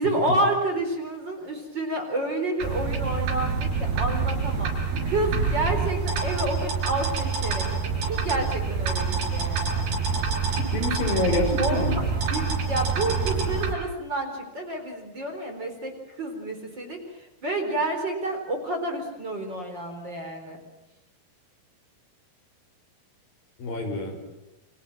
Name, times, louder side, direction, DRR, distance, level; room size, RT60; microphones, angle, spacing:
voice 1, 0.0-4.7 5.0-7.6 8.1-9.8 11.6-15.9 16.2-17.0 17.4-20.6, right 1 dB, 30° right, 4 dB, 4.3 m, -29 dB
sound 1, 2.6-13.7, right 5 dB, 80° right, 6.5 m, -26 dB
voice 2, 10.5-12.0 23.6-24.2, left 2 dB, 65° left, 3 dB, 7.2 m, -27 dB
29.5 x 26.0 x 7.5 m, 0.97 s
omnidirectional pair, 4.5 m